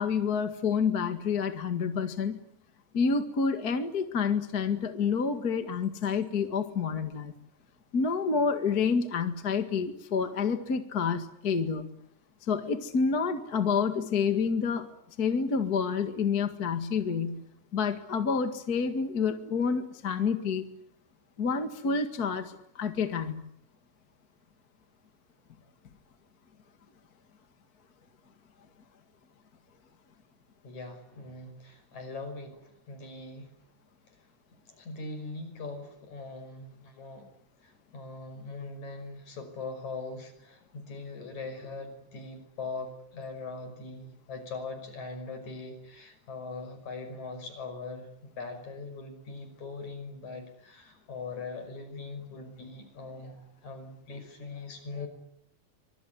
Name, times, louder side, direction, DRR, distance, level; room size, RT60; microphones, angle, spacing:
voice 1, 0.0-2.4 2.9-7.3 7.9-11.9 12.5-17.4 17.7-20.6 21.4-23.4, left 5 dB, 35° left, 7 dB, 2.0 m, -28 dB
voice 2, 30.6-33.5 34.5-55.1, left 3 dB, 65° left, 8 dB, 7.1 m, -41 dB
25.5 x 24.0 x 9.6 m, 0.73 s
omnidirectional pair, 3.6 m